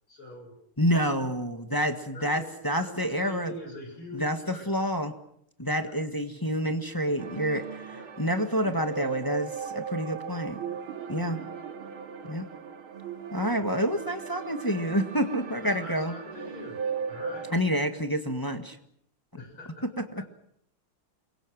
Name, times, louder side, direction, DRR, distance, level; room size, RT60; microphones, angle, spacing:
voice 1, 0.1-0.6 1.4-1.7 2.1-4.7 5.8-6.0 7.9-8.1 11.3-11.5 15.4-17.5 19.4-20.3, left 1 dB, 85° left, 3 dB, 8.0 m, -44 dB
voice 2, 0.8-3.5 4.1-4.4 4.7-5.1 5.6-10.6 11.1-11.4 12.2-12.5 13.3-16.1 17.5-18.8, equal, 10° left, 6 dB, 1.4 m, -28 dB
sound 1, 7.2-17.5, right 6 dB, 85° right, 2.7 m, -37 dB
28.0 x 23.0 x 6.4 m, 0.69 s
omnidirectional pair, 2.3 m